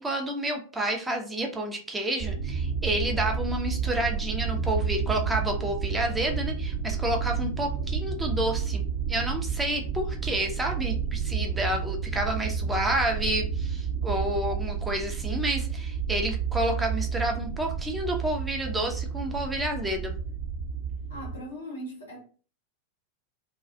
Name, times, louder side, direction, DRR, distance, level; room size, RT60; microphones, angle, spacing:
voice 1, 0.0-20.1, right 1 dB, 10° right, 0.5 m, -30 dB
sound 1, 2.2-21.4, right 6 dB, 40° right, 0.7 m, -30 dB
voice 2, 21.1-22.2, equal, 80° left, 0.8 m, -39 dB
2.3 x 2.2 x 2.4 m
figure-of-eight pair, 90°, 0 cm